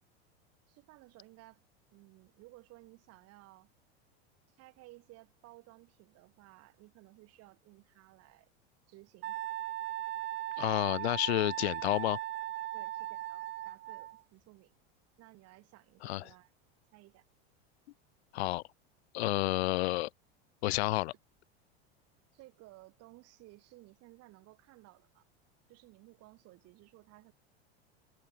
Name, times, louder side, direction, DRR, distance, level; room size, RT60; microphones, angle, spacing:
voice 1, 0.7-1.6 1.9-3.7 4.5-8.5 8.9-9.4 12.7-14.7 15.2-16.5 16.9-17.3 22.3-25.2 25.7-27.3, right 20 dB, 50° right, 4.7 m, -57 dB
Wind instrument woodwind instrument, 9.2-14.2, right 15 dB, 35° right, 0.8 m, -38 dB
voice 2, 10.6-12.2 16.0-16.3 18.3-18.6 19.1-20.1 20.6-21.1, left 19 dB, 85° left, 0.5 m, -30 dB
supercardioid pair, 120°, 31 cm